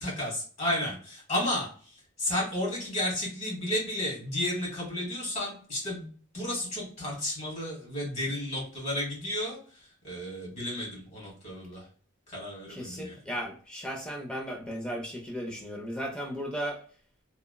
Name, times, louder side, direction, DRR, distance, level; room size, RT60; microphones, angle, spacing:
voice 1, 0.0-11.9 12.3-13.2, left 1 dB, 35° left, -3 dB, 1.3 m, -33 dB
voice 2, 12.7-16.8, equal, 5° left, -1 dB, 0.4 m, -35 dB
3.1 x 2.1 x 2.2 m, 0.43 s
head